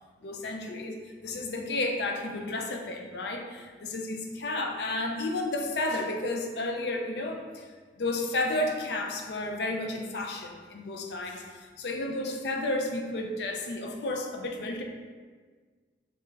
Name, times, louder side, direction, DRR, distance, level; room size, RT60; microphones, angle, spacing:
voice 1, 0.2-7.7 8.0-14.8, left 2 dB, 65° left, 2 dB, 0.5 m, -32 dB
3.6 x 3.6 x 3.1 m, 1.5 s
head